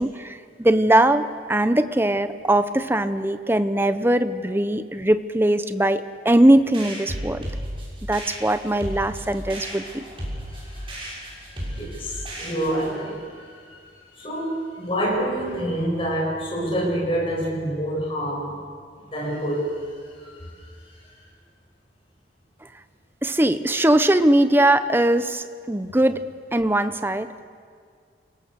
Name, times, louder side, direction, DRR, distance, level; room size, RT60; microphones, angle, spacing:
voice 1, 0.0-7.5 8.1-10.0 23.2-26.2 26.5-27.4, right 1 dB, 10° right, 11 dB, 0.7 m, -20 dB
sound 1, 6.7-12.9, equal, 30° right, 6.5 m, -34 dB
voice 2, 10.5-18.6 19.0-21.1, right 1 dB, 30° left, -2 dB, 7.2 m, -28 dB
29.5 x 18.5 x 6.8 m, 2.1 s
head